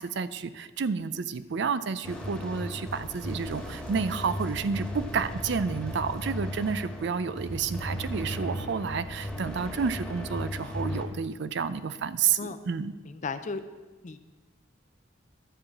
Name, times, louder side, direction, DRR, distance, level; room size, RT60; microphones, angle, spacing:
voice 1, 0.0-12.9, right 6 dB, 65° right, 14 dB, 0.4 m, -30 dB
sound 1, 2.0-11.0, left 1 dB, 5° left, 1.5 m, -36 dB
voice 2, 13.0-13.6 14.0-14.2, left 4 dB, 40° left, 10 dB, 0.5 m, -35 dB
11.5 x 4.9 x 7.1 m, 1.3 s
head